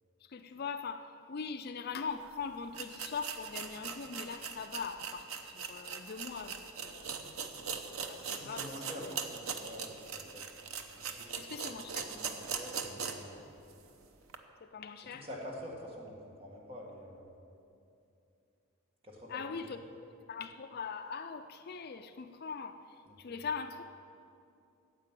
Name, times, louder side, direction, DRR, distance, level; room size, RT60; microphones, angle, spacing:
voice 1, 0.3-5.3 5.5-7.2 8.1-8.6 9.0-9.1 11.4-12.1 14.7-15.3 19.3-19.8 20.3-22.8 23.2-23.8, left 5 dB, 45° left, 8 dB, 0.4 m, -41 dB
sound 1, 2.2-2.3 2.7-13.3 13.7-13.8 14.3-14.4, right 6 dB, 75° right, 0.8 m, -41 dB
voice 2, 8.2-10.4 11.0-11.7 12.0-13.4 15.0-17.3 19.0-19.7 23.1-23.5, equal, 25° right, -2 dB, 1.8 m, -47 dB
9.6 x 7.5 x 8.9 m, 2.6 s
head